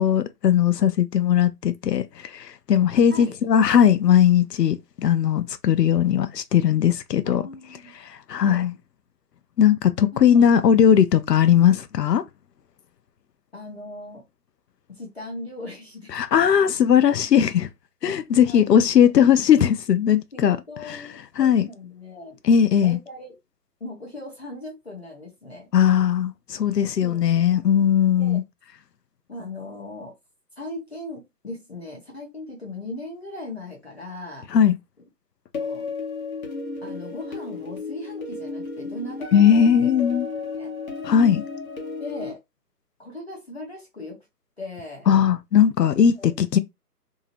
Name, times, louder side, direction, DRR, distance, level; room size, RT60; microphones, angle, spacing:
voice 1, 0.0-7.4 8.3-8.7 9.6-12.2 16.1-17.7 18.0-20.6 21.4-21.7 22.5-23.0 25.7-28.4 34.5-34.8 39.3-40.3 41.0-41.4 45.1-46.6, left 9 dB, 85° left, 0.6 m, -18 dB
voice 2, 7.2-7.9 8.3-8.6 10.1-10.5 13.5-14.2 14.9-16.2 18.0-18.2 18.5-19.1 20.3-22.4 22.8-23.3 23.8-25.7 27.0-27.9 28.2-28.4 29.3-30.1 30.6-34.5 35.5-35.8 36.8-39.9 40.6-40.7 42.0-42.4 43.0-44.2 44.6-45.1 46.2-46.3, left 2 dB, 40° left, 0.8 m, -38 dB
sound 1, 35.5-42.3, left 4 dB, 60° left, 1.0 m, -33 dB
2.7 x 2.0 x 2.8 m
hypercardioid pair, 175°, 48 cm